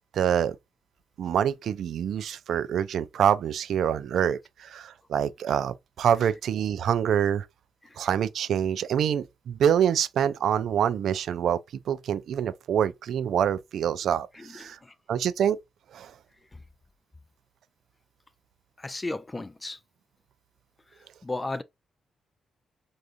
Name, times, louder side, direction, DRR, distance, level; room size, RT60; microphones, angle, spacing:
voice 1, 0.1-0.6 1.2-7.5 8.0-11.6 11.9-14.8 15.1-15.6 15.9-16.1, right 9 dB, 70° right, 0.3 m, -26 dB
voice 2, 14.3-14.9 18.8-19.8 21.2-21.6, left 2 dB, 25° left, 0.4 m, -35 dB
3.5 x 2.4 x 2.5 m
supercardioid pair, 55°, 0 cm